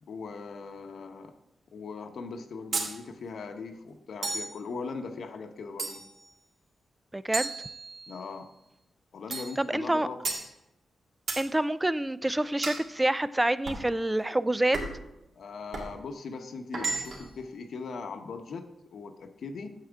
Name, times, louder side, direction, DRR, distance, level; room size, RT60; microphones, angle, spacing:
voice 1, 0.0-1.3 1.7-6.0 8.1-8.5 9.1-10.5 15.4-19.7, left 4 dB, 65° left, 6 dB, 1.0 m, -40 dB
sound 1, 2.7-3.0 4.2-4.6 5.8-6.2 7.3-8.2 9.3-9.6 10.2-10.5 11.3-11.5 12.6-12.9 13.7-13.9 14.7-15.1 15.7-15.9 16.7-17.3, right 3 dB, 65° right, 1.9 m, -33 dB
voice 2, 7.1-7.5 9.6-10.1 11.4-14.8, right 1 dB, 10° right, 16 dB, 0.3 m, -27 dB
9.0 x 7.7 x 3.6 m, 0.90 s
wide cardioid pair, 150°, 0 cm